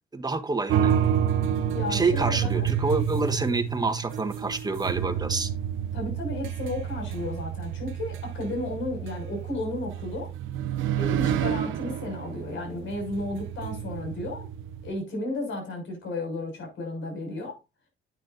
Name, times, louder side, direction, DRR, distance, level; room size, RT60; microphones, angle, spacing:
voice 1, 0.1-1.0 1.9-5.5, right 3 dB, 20° right, 1.6 m, -27 dB
sound 1, 0.7-14.9, right 9 dB, 85° right, 1.0 m, -29 dB
voice 2, 1.7-2.6 5.9-10.3 11.0-14.5 14.8-17.6, left 2 dB, 70° left, 6.4 m, -33 dB
10.5 x 8.9 x 2.7 m
cardioid pair, 90°, 20 cm